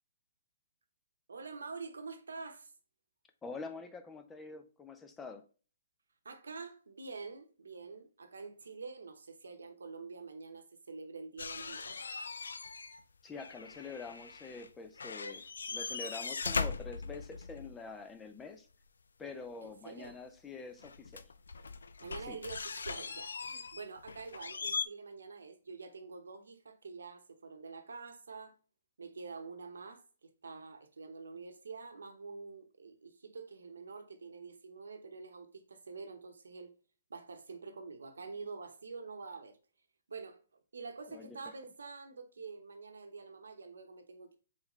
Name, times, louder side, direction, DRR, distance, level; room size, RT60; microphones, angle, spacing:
voice 1, 1.3-2.7 6.2-12.0 19.6-20.2 22.0-28.5 29.0-36.7 37.1-39.6 40.1-44.4, right 4 dB, 85° right, 0.8 m, -47 dB
voice 2, 3.4-5.4 13.2-15.4 15.7-18.7 19.2-21.2 22.3-22.4 41.1-41.4, left 4 dB, 10° left, 0.5 m, -46 dB
sound 1, 11.4-13.0 13.3-14.7 15.0-17.7 20.0-20.1 20.8-24.9, left 4 dB, 85° left, 0.4 m, -40 dB
4.0 x 3.9 x 3.0 m
hypercardioid pair, 140°, 0 cm